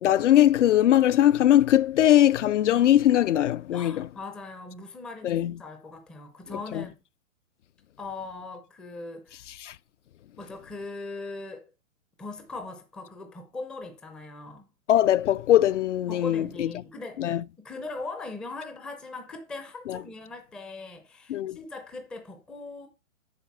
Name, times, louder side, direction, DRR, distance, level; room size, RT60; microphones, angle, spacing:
voice 1, 0.0-4.1 5.2-5.6 6.7-6.9 9.6-9.8 14.9-16.7 17.2-17.4 19.9-20.0 21.3-21.6, left 12 dB, 60° left, 0.5 m, -21 dB
voice 2, 3.7-7.0 8.0-9.4 10.4-11.7 12.2-14.7 16.1-17.3 17.6-22.9, left 3 dB, ahead, 0.5 m, -40 dB
8.4 x 5.8 x 5.5 m
hypercardioid pair, 135°, 41 cm